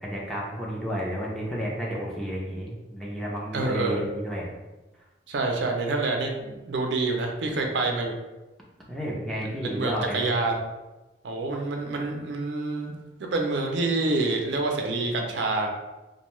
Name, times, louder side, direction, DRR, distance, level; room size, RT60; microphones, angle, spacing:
voice 1, 0.0-4.5 8.9-10.3, equal, ahead, -5 dB, 0.5 m, -31 dB
voice 2, 3.5-4.1 5.3-8.1 9.4-10.6 11.2-12.9 13.2-15.7, right 3 dB, 80° right, 2 dB, 0.4 m, -27 dB
2.6 x 2.2 x 3.0 m, 1.1 s
head